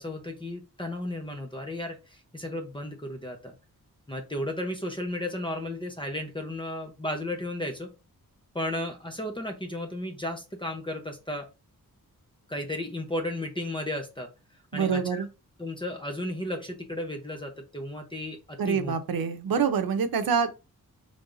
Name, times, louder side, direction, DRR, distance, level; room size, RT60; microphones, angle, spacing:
voice 1, 0.0-3.5 4.1-7.9 8.5-11.5 12.5-14.3 14.7-15.2 15.6-18.9, left 1 dB, 15° left, 0.7 m, -34 dB
voice 2, 14.7-15.3 18.6-20.6, right 6 dB, 75° right, 0.8 m, -26 dB
5.5 x 3.4 x 2.6 m
wide cardioid pair, 135°, 36 cm